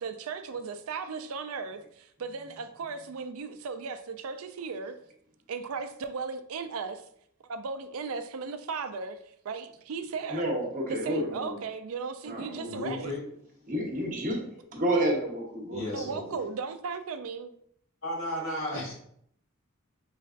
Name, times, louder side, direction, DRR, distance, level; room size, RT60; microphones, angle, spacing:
voice 1, 0.0-5.0 5.5-7.0 7.4-9.2 9.4-10.6 10.9-13.1 15.9-17.5, right 5 dB, 80° right, 9 dB, 0.4 m, -36 dB
voice 2, 10.3-11.6 12.2-12.7 13.7-16.4, right 1 dB, 40° right, 1 dB, 1.0 m, -30 dB
voice 3, 12.6-13.2 15.7-16.2 18.0-18.9, left 1 dB, 65° left, -4 dB, 1.7 m, -34 dB
5.2 x 3.2 x 2.5 m, 0.69 s
head